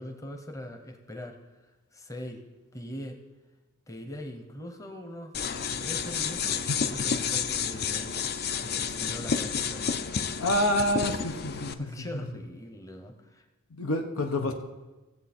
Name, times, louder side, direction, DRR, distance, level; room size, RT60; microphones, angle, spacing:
voice 1, 0.0-1.4 1.9-2.5 2.7-3.2 3.9-8.2 8.6-9.9 10.2-10.3 11.8-13.4, equal, 15° left, 5 dB, 1.0 m, -41 dB
sound 1, 5.3-11.7, left 6 dB, 50° left, 0.5 m, -30 dB
voice 2, 10.4-12.3 13.7-14.5, left 1 dB, 85° left, 5 dB, 1.2 m, -28 dB
17.0 x 7.4 x 4.4 m, 1.1 s
head